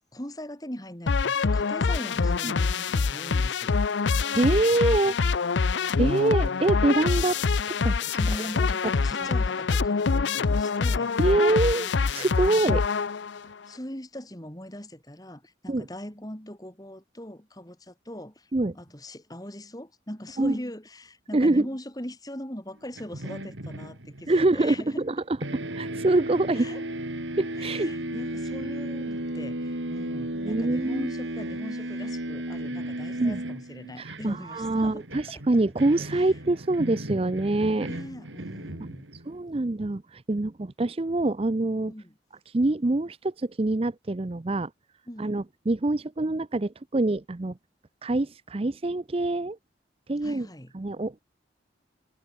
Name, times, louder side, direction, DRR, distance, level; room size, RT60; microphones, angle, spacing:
voice 1, 0.1-3.8 8.2-11.1 12.5-12.8 13.7-25.0 26.5-26.9 27.6-35.0 35.3-35.4 36.1-36.3 37.8-39.1 41.9-42.1 45.1-45.4 50.2-50.7, left 1 dB, 20° left, 3.4 m, -40 dB
sound 1, 1.1-13.5, left 4 dB, 70° left, 0.6 m, -25 dB
voice 2, 4.2-5.2 6.0-7.4 7.7-8.5 11.2-12.8 15.7-15.9 18.5-18.8 20.4-20.6 21.3-21.7 24.3-26.7 27.4-27.9 30.3-31.1 33.2-33.4 34.0-37.9 39.3-41.9 42.5-44.7 45.2-47.6 48.0-49.6 50.1-50.5 50.7-51.2, right 2 dB, 30° right, 0.5 m, -25 dB
sound 2, 23.0-25.1 25.4-39.4, right 1 dB, 80° right, 3.6 m, -35 dB
head